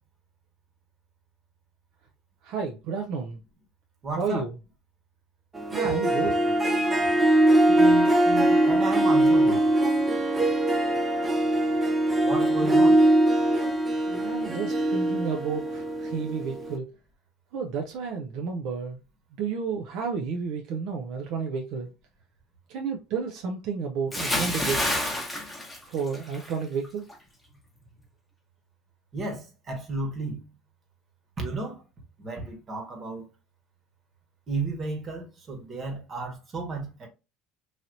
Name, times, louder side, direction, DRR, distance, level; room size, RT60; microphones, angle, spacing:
voice 1, 2.4-3.4 4.1-4.6 5.7-6.4 12.6-12.9 14.1-16.9 17.5-19.0 19.4-21.9 22.7-25.1 25.9-27.0, right 5 dB, 65° right, 0.5 m, -31 dB
voice 2, 4.0-4.4 7.7-9.6 12.2-13.0 29.1-30.4 31.4-31.8 32.2-33.3 34.5-37.1, right 2 dB, 35° right, 1.3 m, -33 dB
Harp, 5.5-16.8, right 1 dB, 15° right, 0.6 m, -22 dB
Bathtub (filling or washing) / Splash splatter, 24.1-26.5 26.8-27.1, left 1 dB, 5° left, 1.0 m, -28 dB
3.2 x 2.7 x 2.6 m
supercardioid pair, 120°, 0 cm